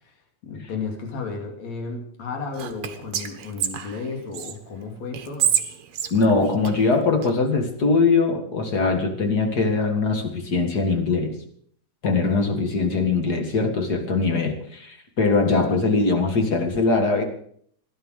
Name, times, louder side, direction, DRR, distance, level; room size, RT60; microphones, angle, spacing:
voice 1, 0.4-5.6 12.0-12.4, left 4 dB, 65° left, 3 dB, 3.8 m, -33 dB
Whispering, 2.5-4.5 5.1-7.3, right 9 dB, 60° right, 1.8 m, -27 dB
voice 2, 6.1-11.4 12.0-17.2, left 3 dB, 35° left, 5 dB, 2.1 m, -21 dB
16.0 x 11.5 x 6.5 m, 0.63 s
omnidirectional pair, 3.4 m